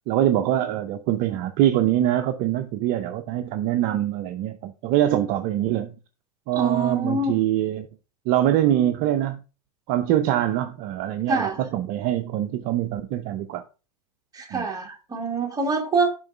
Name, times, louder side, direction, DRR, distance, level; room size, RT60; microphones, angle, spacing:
voice 1, 0.1-5.9 6.5-7.9 8.3-9.4 9.9-13.6 14.5-14.7, right 12 dB, 50° right, 0.6 m, -24 dB
voice 2, 6.5-7.4 11.3-11.6 14.3-16.1, right 3 dB, 20° right, 1.8 m, -25 dB
6.3 x 3.8 x 4.7 m
hypercardioid pair, 105°, 19 cm